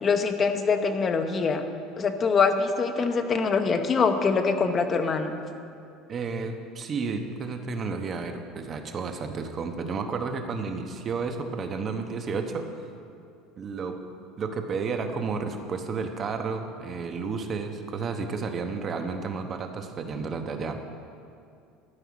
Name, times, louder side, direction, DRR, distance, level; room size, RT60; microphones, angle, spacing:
voice 1, 0.0-1.6 2.0-5.4, left 5 dB, 25° left, 7 dB, 0.9 m, -24 dB
voice 2, 6.1-12.8 13.6-14.0 14.4-20.8, right 4 dB, 30° right, 6 dB, 1.0 m, -32 dB
13.0 x 5.7 x 9.4 m, 2.5 s
cardioid pair, 140°, 0 cm